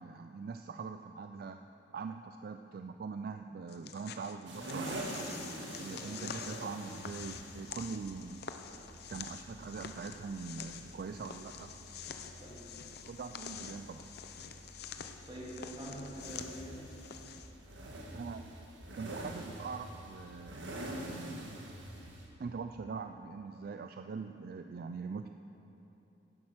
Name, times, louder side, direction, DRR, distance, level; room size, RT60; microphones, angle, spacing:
voice 1, 0.0-1.6 1.9-5.3 5.8-8.5 9.1-11.7 13.1-14.1 18.1-18.5 19.0-20.6 21.0-21.6 22.4-25.3, right 5 dB, 55° right, 7 dB, 0.4 m, -42 dB
sound 1, 3.7-17.5, left 7 dB, 60° left, 0.6 m, -47 dB
sound 2, 4.5-22.3, right 1 dB, 90° right, 1.7 m, -46 dB
voice 2, 6.0-6.4 12.4-12.7 15.2-16.9 17.8-18.5, equal, 30° right, -4 dB, 2.3 m, -47 dB
11.0 x 10.5 x 5.8 m, 3.0 s
head